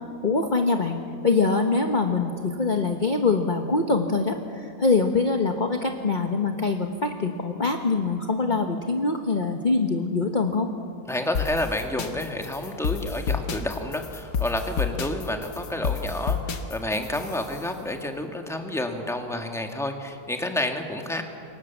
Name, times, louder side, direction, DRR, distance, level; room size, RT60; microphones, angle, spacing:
voice 1, 0.2-10.7, left 3 dB, 30° left, 4 dB, 1.3 m, -24 dB
voice 2, 11.1-21.2, left 1 dB, ahead, 4 dB, 1.9 m, -29 dB
sound 1, 11.3-17.7, left 6 dB, 80° left, 1.9 m, -30 dB
28.0 x 23.5 x 7.3 m, 2.5 s
omnidirectional pair, 1.8 m